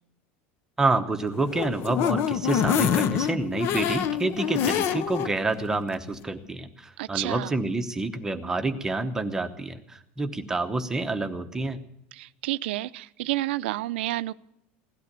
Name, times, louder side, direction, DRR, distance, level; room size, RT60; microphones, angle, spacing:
voice 1, 0.8-11.8, right 2 dB, 10° right, 7 dB, 0.9 m, -28 dB
sound 1, 1.3-5.3 5.7-5.8 6.1-6.2, left 9 dB, 45° left, 0.9 m, -26 dB
voice 2, 7.0-7.5 12.1-14.3, right 16 dB, 85° right, 15 dB, 0.6 m, -30 dB
17.0 x 12.0 x 6.7 m, 0.81 s
supercardioid pair, 160°, 6 cm